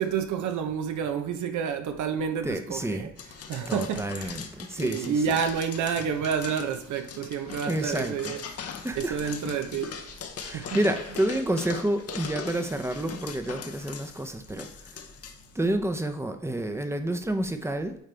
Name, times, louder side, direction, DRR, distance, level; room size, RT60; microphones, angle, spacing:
voice 1, 0.0-3.1 3.5-4.4 4.8-8.4 8.9-10.8, right 7 dB, 75° right, 0.8 m, -29 dB
voice 2, 2.4-3.1 3.7-5.4 7.6-8.3 8.8-9.3 10.4-14.7 15.5-18.0, right 1 dB, 10° right, 0.7 m, -29 dB
sound 1, 3.2-15.6, left 6 dB, 55° left, 0.8 m, -41 dB
8.9 x 3.1 x 3.4 m
cardioid pair, 90°, 30 cm